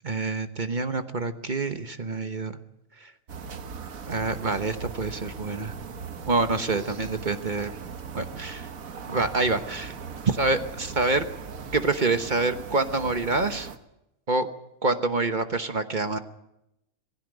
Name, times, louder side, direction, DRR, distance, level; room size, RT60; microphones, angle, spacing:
voice 1, 0.0-2.6 4.1-5.7 6.3-7.7 8.1-8.7 9.1-9.9 10.2-11.2 11.7-13.7 14.3-14.5 14.8-16.2, right 3 dB, 40° right, 9 dB, 1.2 m, -26 dB
sound 1, 3.3-13.8, right 6 dB, 90° right, 1.7 m, -39 dB
20.0 x 16.0 x 9.4 m, 0.87 s
omnidirectional pair, 1.4 m